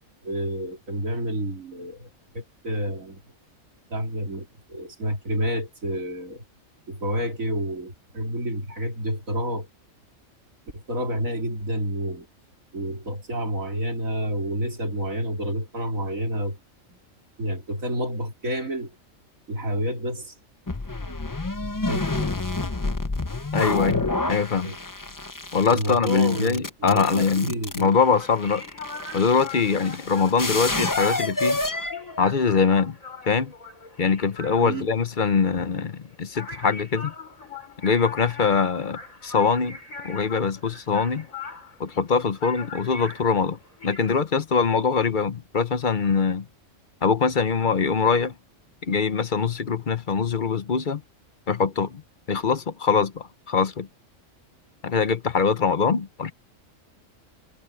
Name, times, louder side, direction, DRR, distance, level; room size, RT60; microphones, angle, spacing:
voice 1, 0.2-3.2 3.9-6.4 6.9-9.7 10.7-12.3 12.7-16.6 16.9-17.0 17.4-18.9 19.5-20.4 21.9-22.3 24.6-24.8 25.7-27.9 34.6-34.9, equal, 85° right, 4.2 m, -29 dB
sound 1, 20.7-32.7, left 2 dB, 20° left, 0.6 m, -29 dB
voice 2, 23.5-24.7 25.5-28.6 29.1-31.6 32.2-32.9 33.3-33.5 34.0-37.1 37.8-39.8 40.0-41.3 41.8-46.5 47.0-48.3 48.8-51.0 51.5-52.0 52.3-53.9 54.8-56.3, left 5 dB, 40° left, 0.9 m, -23 dB
sound 2, 27.9-44.1, left 4 dB, 90° left, 6.5 m, -41 dB
omnidirectional pair, 1.4 m